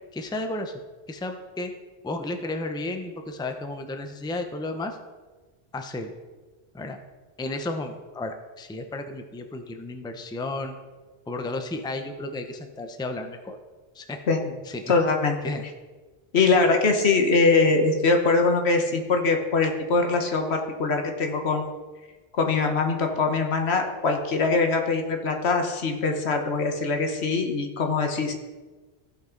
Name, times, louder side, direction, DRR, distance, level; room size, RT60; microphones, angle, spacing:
voice 1, 0.1-1.7 2.0-5.0 5.7-6.1 6.7-7.0 7.4-10.7 11.3-13.6 13.9-14.2 14.7-14.9 15.4-15.6, left 2 dB, 5° left, 6 dB, 0.5 m, -33 dB
voice 2, 14.9-15.4 16.3-21.7 22.4-28.3, left 3 dB, 80° left, 4 dB, 1.3 m, -22 dB
15.0 x 5.5 x 3.9 m, 1.3 s
omnidirectional pair, 1.1 m